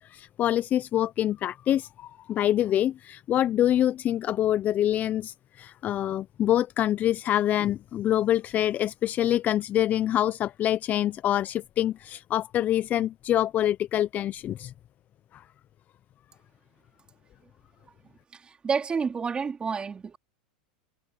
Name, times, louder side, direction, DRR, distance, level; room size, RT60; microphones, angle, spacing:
voice 1, 0.0-14.7 15.3-15.4, left 12 dB, 35° left, 0.8 m, -26 dB
voice 2, 18.3-20.2, right 5 dB, 20° right, 2.9 m, -29 dB
hypercardioid pair, 100°, 5 cm